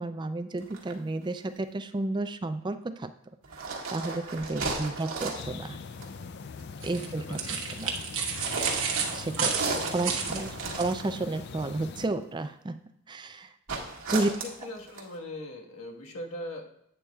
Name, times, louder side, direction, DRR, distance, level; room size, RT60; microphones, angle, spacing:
voice 1, 0.0-3.2 3.5-3.6 3.9-5.8 6.8-8.0 9.1-12.8 13.1-13.5 14.1-14.3, right 2 dB, 20° right, 10 dB, 0.3 m, -32 dB
sound 1, 0.6-0.9 3.4-5.5 5.9-6.2 8.3-11.4 13.7-15.1, right 3 dB, 90° right, 1.7 m, -35 dB
voice 2, 4.5-5.0 6.9-7.6 9.8-10.6 14.1-14.3 14.6-16.7, left 1 dB, 80° left, 0 dB, 1.4 m, -42 dB
sound 2, 5.3-12.1, left 5 dB, 50° left, 0.4 m, -42 dB
sound 3, 6.8-10.9, right 6 dB, 65° right, 1.1 m, -31 dB
11.0 x 8.8 x 2.3 m, 0.76 s
head